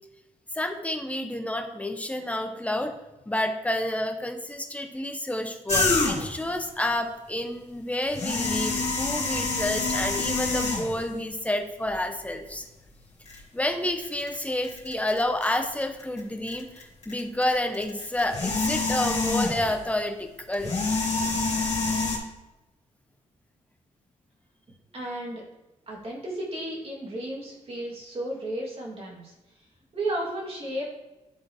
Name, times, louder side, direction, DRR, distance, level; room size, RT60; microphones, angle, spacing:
voice 1, 0.5-2.9 3.3-12.6 13.5-20.8 21.1-21.3, left 1 dB, 10° left, 5 dB, 0.9 m, -29 dB
sound 1, 5.7-6.4 8.0-11.1 11.9-12.0 13.3-13.4 13.9-16.2 16.5-19.8 20.5-22.2, left 3 dB, 50° left, 2.5 m, -27 dB
voice 2, 24.9-25.4 25.9-29.3 29.9-30.9, right 1 dB, 45° right, -3 dB, 2.6 m, -33 dB
10.0 x 3.8 x 3.6 m, 1.0 s
cardioid pair, 70°, 14 cm